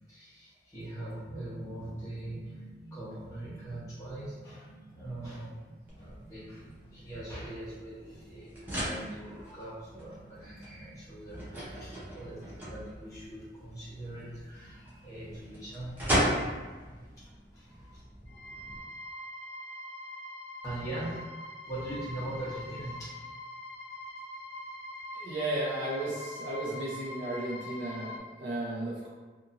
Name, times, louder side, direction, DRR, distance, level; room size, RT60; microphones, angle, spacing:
voice 1, 0.1-18.0 20.6-21.2 21.7-23.1, right 1 dB, 20° left, -10 dB, 1.0 m, -42 dB
sound 1, 5.9-18.8, equal, 10° right, 0.6 m, -37 dB
sound 2, 18.3-28.2, left 1 dB, 75° left, 0.4 m, -43 dB
voice 2, 25.1-29.1, right 1 dB, 80° right, -7 dB, 0.6 m, -34 dB
2.7 x 2.6 x 2.5 m, 1.3 s
head